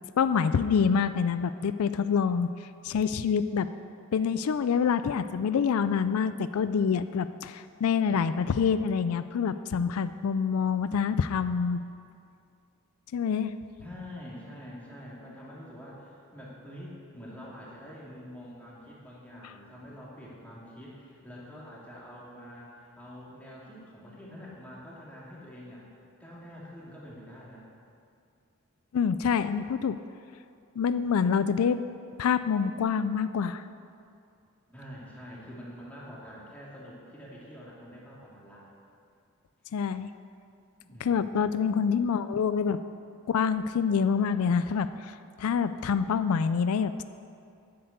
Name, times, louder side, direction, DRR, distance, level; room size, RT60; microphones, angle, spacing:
voice 1, 0.2-2.5 2.8-3.7 4.1-11.8 13.1-13.5 28.9-30.0 30.8-31.8 32.2-33.6 39.7-40.1 41.0-42.8 43.3-47.0, left 6 dB, 85° left, 12 dB, 0.4 m, -26 dB
voice 2, 13.8-25.8 26.2-27.6 34.7-38.6 40.8-41.6, equal, 5° left, -6 dB, 2.5 m, -46 dB
10.5 x 7.8 x 8.0 m, 2.4 s
head